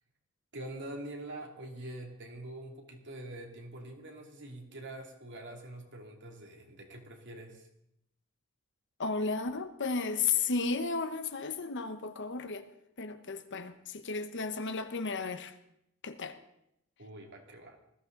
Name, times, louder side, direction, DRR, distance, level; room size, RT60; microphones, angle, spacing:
voice 1, 0.5-7.7 17.0-17.8, right 1 dB, 55° right, 2.8 m, -45 dB
voice 2, 9.0-12.7 13.0-15.5 16.0-16.4, left 4 dB, 60° left, 1.1 m, -33 dB
20.0 x 14.5 x 4.0 m
head